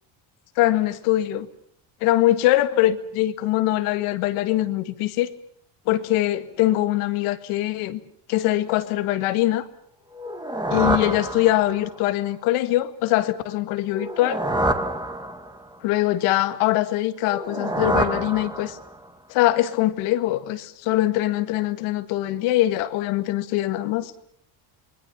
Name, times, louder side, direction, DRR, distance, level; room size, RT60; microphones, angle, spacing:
voice 1, 0.6-1.5 2.0-5.3 5.9-8.0 8.3-9.7 10.7-14.4 15.8-18.8 19.3-24.1, left 15 dB, 85° left, 11 dB, 1.9 m, -22 dB
sound 1, 10.1-12.0 13.9-15.8 17.2-19.1, right 1 dB, 10° right, 1.7 m, -27 dB
27.5 x 21.5 x 7.0 m, 0.66 s
cardioid pair, 115°, 50 cm